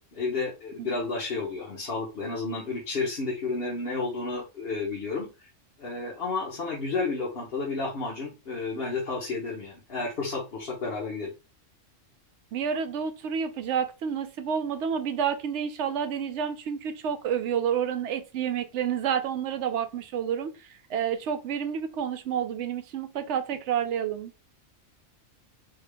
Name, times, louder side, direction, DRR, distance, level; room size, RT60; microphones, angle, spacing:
voice 1, 0.0-5.3 5.8-11.3, left 3 dB, 50° left, 1.2 m, -31 dB
voice 2, 12.5-24.3, right 8 dB, 70° right, 0.9 m, -29 dB
3.6 x 2.7 x 3.3 m
omnidirectional pair, 1.3 m